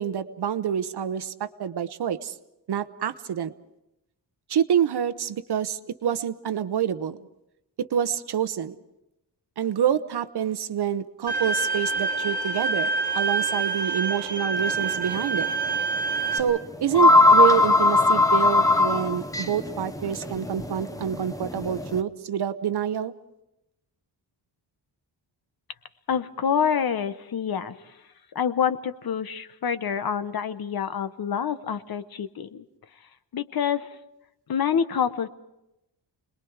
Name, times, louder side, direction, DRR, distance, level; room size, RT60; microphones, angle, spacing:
voice 1, 0.0-2.3 2.7-3.5 4.5-7.2 7.8-8.7 9.6-12.9 13.1-15.5 16.3-23.1, right 9 dB, 60° right, 12 dB, 0.9 m, -27 dB
Bowed string instrument, 11.3-16.4, right 4 dB, 20° right, 4.6 m, -27 dB
sound 1, 14.6-14.8 15.2-15.3 16.4-16.5 16.7-22.0, left 3 dB, 10° left, 0.7 m, -20 dB
voice 2, 26.1-28.0 28.3-32.6 33.3-33.9 34.5-35.3, left 7 dB, 50° left, 12 dB, 0.9 m, -27 dB
29.5 x 21.0 x 4.8 m, 0.89 s
wide cardioid pair, 175°, 45 cm